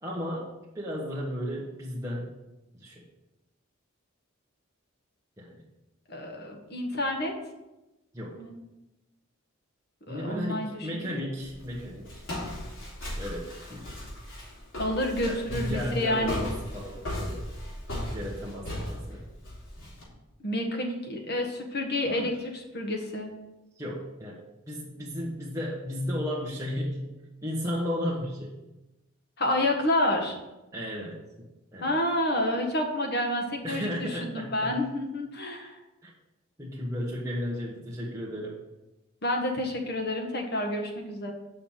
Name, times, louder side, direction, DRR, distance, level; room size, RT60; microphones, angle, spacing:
voice 1, 0.0-2.4 2.7-3.0 5.4-5.6 8.1-8.4 10.1-12.2 13.0-13.9 15.2-17.5 18.1-19.2 22.0-22.3 23.8-27.1 27.4-28.6 30.7-31.2 31.7-31.9 33.6-34.8 36.0-36.1 36.6-38.6, equal, 15° right, -6 dB, 1.3 m, -34 dB
voice 2, 6.1-7.4 8.4-8.5 10.1-11.1 14.8-16.4 20.4-23.3 29.4-30.4 31.8-35.8 39.2-41.3, left 1 dB, 50° left, 2 dB, 1.5 m, -29 dB
Walk footsteps, 11.4-20.0, left 1 dB, 75° left, 3.3 m, -36 dB
6.6 x 6.0 x 7.4 m, 1.0 s
head